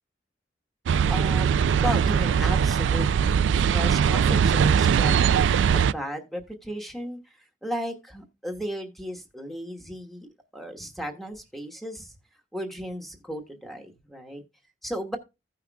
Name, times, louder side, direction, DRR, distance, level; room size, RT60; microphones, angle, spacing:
sound 1, 0.9-5.9, right 7 dB, 90° right, 0.3 m, -21 dB
voice 1, 1.1-5.1 5.7-10.3 10.5-12.1 12.5-14.4 14.8-15.2, equal, ahead, 1.3 m, -35 dB
15.5 x 5.8 x 2.3 m
head